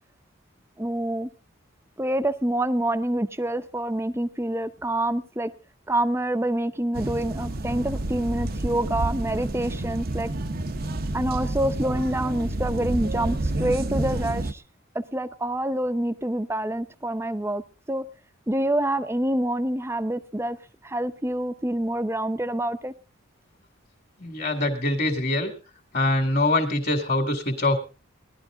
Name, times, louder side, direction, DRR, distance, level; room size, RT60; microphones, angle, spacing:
voice 1, 0.8-1.3 2.0-5.5 5.9-10.3 11.1-14.6 14.9-17.6 17.9-18.0 18.5-20.6 20.8-22.9, right 1 dB, 10° right, 11 dB, 0.7 m, -26 dB
sound 1, 6.9-14.5, right 2 dB, 45° right, 0.7 m, -29 dB
voice 2, 24.2-25.5 25.9-27.8, left 2 dB, 45° left, 3 dB, 2.2 m, -24 dB
18.5 x 11.5 x 3.8 m, 0.33 s
head